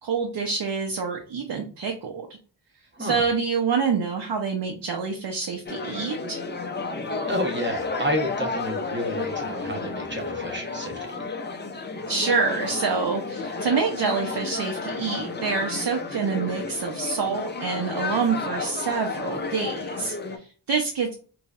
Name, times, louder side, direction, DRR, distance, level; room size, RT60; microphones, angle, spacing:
voice 1, 0.0-2.3 3.0-6.4 12.1-21.1, right 5 dB, 65° right, 2 dB, 0.7 m, -27 dB
sound 1, 5.7-20.4, left 3 dB, 25° left, 0.4 m, -32 dB
voice 2, 7.3-11.2, equal, 25° right, 3 dB, 0.8 m, -30 dB
4.1 x 3.1 x 2.4 m, 0.39 s
wide cardioid pair, 145°, 45 cm